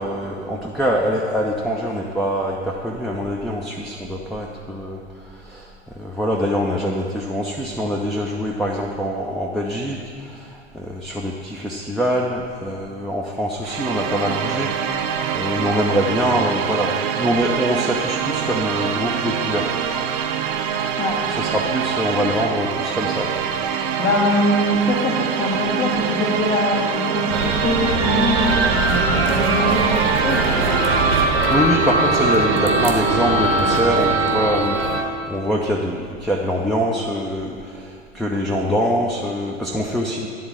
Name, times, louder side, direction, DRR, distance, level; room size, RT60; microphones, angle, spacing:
voice 1, 0.0-19.7 20.1-20.2 21.3-23.4 31.5-40.3, equal, ahead, -2 dB, 0.6 m, -24 dB
sound 1, 13.6-31.6, right 8 dB, 45° right, 0.7 m, -25 dB
voice 2, 24.0-30.5, left 1 dB, 40° left, -6 dB, 1.6 m, -22 dB
sound 2, 27.3-35.0, right 2 dB, 75° right, 1.1 m, -20 dB
10.5 x 3.9 x 7.3 m, 2.1 s
figure-of-eight pair, 75°, 33 cm